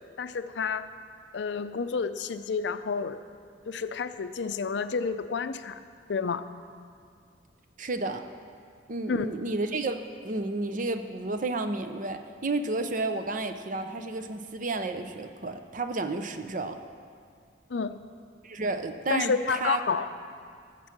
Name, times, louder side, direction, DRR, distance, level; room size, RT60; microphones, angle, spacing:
voice 1, 0.2-0.9 1.3-3.2 3.7-5.8 6.1-6.5 9.1-9.3 17.7-18.0 19.1-20.1, left 5 dB, 70° left, 11 dB, 0.5 m, -30 dB
voice 2, 7.8-8.2 8.9-10.0 10.2-16.8 18.4-19.8, right 2 dB, 45° right, 8 dB, 0.6 m, -31 dB
14.0 x 7.4 x 6.0 m, 2.2 s
head